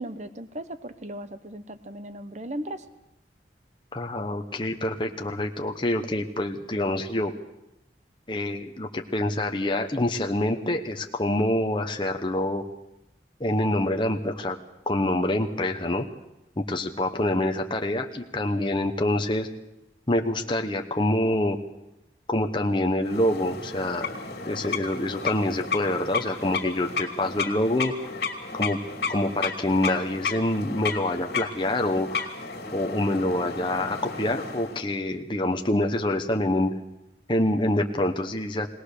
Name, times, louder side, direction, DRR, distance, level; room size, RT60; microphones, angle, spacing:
voice 1, 0.0-2.9, right 1 dB, 40° right, 11 dB, 1.0 m, -37 dB
voice 2, 3.9-7.3 8.3-12.6 13.4-14.6 14.9-16.1 16.6-19.5 20.1-21.6 22.3-24.1 24.4-28.1 28.5-28.8 29.1-32.3 32.7-36.8 37.3-38.7, left 1 dB, 25° left, 4 dB, 1.0 m, -26 dB
sound 1, 23.0-34.8, left 4 dB, 65° left, 2.8 m, -33 dB
21.0 x 18.5 x 6.7 m, 0.92 s
head